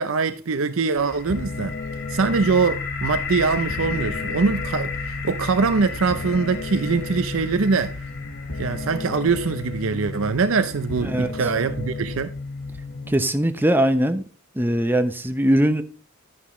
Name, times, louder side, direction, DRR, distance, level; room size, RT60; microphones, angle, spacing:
voice 1, 0.0-1.7 2.1-8.0 8.5-12.3, right 4 dB, 70° right, 0.6 m, -23 dB
sound 1, 1.0-12.8, left 4 dB, 55° left, 5.8 m, -35 dB
sound 2, 1.3-13.3, left 3 dB, 75° left, 1.3 m, -33 dB
voice 2, 11.0-11.3 13.1-14.2 14.6-15.8, right 1 dB, 10° right, 0.8 m, -20 dB
11.5 x 9.8 x 3.1 m
head